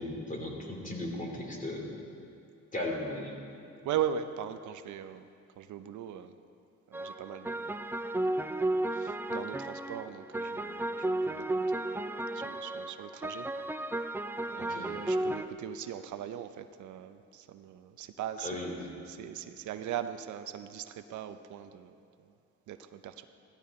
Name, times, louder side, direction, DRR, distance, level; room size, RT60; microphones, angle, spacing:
voice 1, 0.0-1.9 2.7-3.3 14.6-14.9 18.4-18.9, left 1 dB, 25° left, 0 dB, 2.9 m, -36 dB
voice 2, 3.8-5.3 5.6-6.4 6.9-7.9 8.2-11.5 11.7-11.9 12.3-13.5 14.5-18.5 19.1-21.9 22.7-23.2, right 9 dB, 75° right, 10 dB, 0.7 m, -39 dB
sound 1, 6.9-15.5, right 1 dB, 5° right, 0.4 m, -33 dB
16.0 x 13.5 x 4.3 m, 2.5 s
cardioid pair, 90°, 30 cm